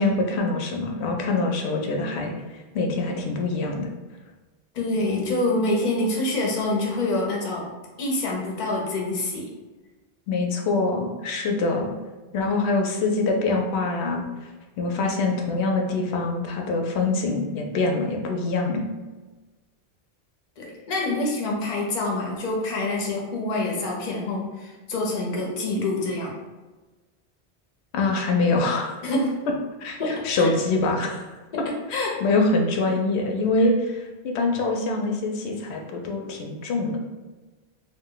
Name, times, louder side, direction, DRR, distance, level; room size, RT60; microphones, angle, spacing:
voice 1, 0.0-2.3 2.7-3.9 10.3-11.9 12.3-14.3 14.8-18.9 27.9-28.9 29.8-31.2 31.9-37.0, left 3 dB, 80° left, 2 dB, 0.8 m, -24 dB
voice 2, 4.7-7.7 8.0-9.5 20.6-26.3 29.0-29.4 30.0-30.5 31.5-32.2, left 2 dB, 50° left, -1 dB, 0.7 m, -26 dB
2.5 x 2.1 x 3.7 m, 1.2 s
omnidirectional pair, 1.1 m